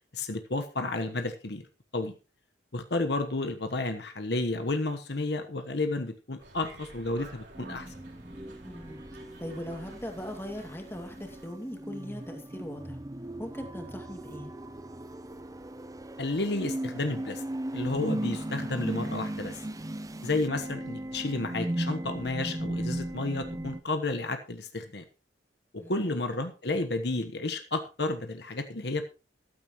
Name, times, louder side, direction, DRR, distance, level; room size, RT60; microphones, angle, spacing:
voice 1, 0.1-1.7 1.9-2.1 2.7-7.9 16.2-17.4 17.7-19.6 20.2-25.0 25.7-29.1, left 2 dB, 65° left, 7 dB, 1.2 m, -31 dB
sound 1, 6.4-11.5, right 2 dB, 75° right, 3.7 m, -51 dB
sound 2, 7.6-23.8, right 1 dB, 20° right, 0.6 m, -37 dB
voice 2, 8.6-9.0 9.4-13.0 13.4-14.6 25.8-26.2, equal, 15° left, 3 dB, 2.4 m, -40 dB
14.0 x 12.5 x 3.1 m, 0.32 s
head